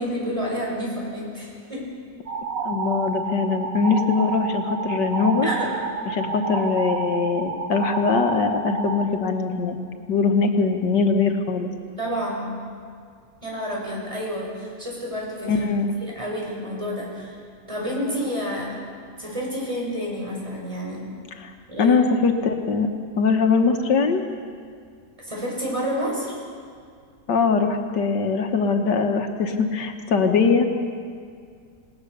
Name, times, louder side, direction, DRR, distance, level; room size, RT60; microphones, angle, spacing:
voice 1, 0.0-1.9 5.4-5.7 12.0-12.5 13.4-17.4 17.7-18.7 19.2-21.1 21.7-22.0 25.2-26.3, equal, 15° right, -4 dB, 6.6 m, -29 dB
sound 1, 2.3-9.1, right 5 dB, 80° right, 2.1 m, -29 dB
voice 2, 2.7-5.5 6.1-9.8 10.1-11.7 15.5-15.9 21.4-21.5 21.8-22.9 23.2-24.2 27.3-30.7, left 5 dB, 80° left, 5 dB, 1.9 m, -21 dB
28.0 x 18.5 x 6.8 m, 2.2 s
omnidirectional pair, 1.8 m